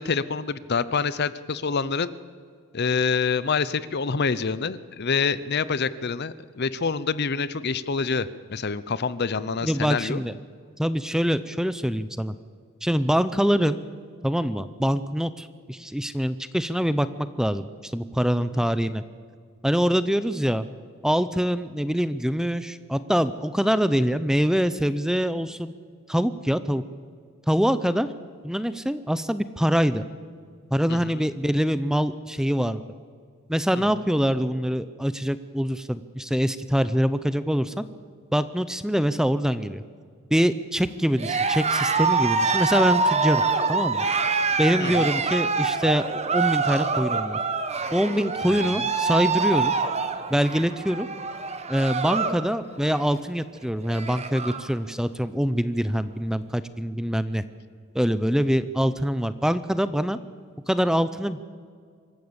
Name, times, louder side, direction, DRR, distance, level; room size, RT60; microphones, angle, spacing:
voice 1, 0.0-2.1 2.7-10.2 18.5-18.7 30.9-31.2 44.8-45.1 48.5-48.8, left 5 dB, 50° left, 16 dB, 0.7 m, -27 dB
voice 2, 9.6-10.4 10.8-12.3 12.8-13.8 14.2-17.1 17.4-19.0 19.6-20.7 21.0-25.7 26.1-26.8 27.5-28.1 28.4-30.0 30.7-32.8 33.5-37.8 38.3-39.8 40.3-43.4 43.7-44.0 44.6-46.1 46.3-47.4 47.9-49.7 50.3-51.1 51.7-57.4 57.9-60.2 60.7-61.4, equal, 5° right, 13 dB, 0.5 m, -24 dB
Cheering, 41.1-52.4 52.7-53.1 53.6-53.7 53.8-54.7, right 4 dB, 30° right, 1.2 m, -25 dB
25.5 x 14.0 x 8.1 m, 2.1 s
head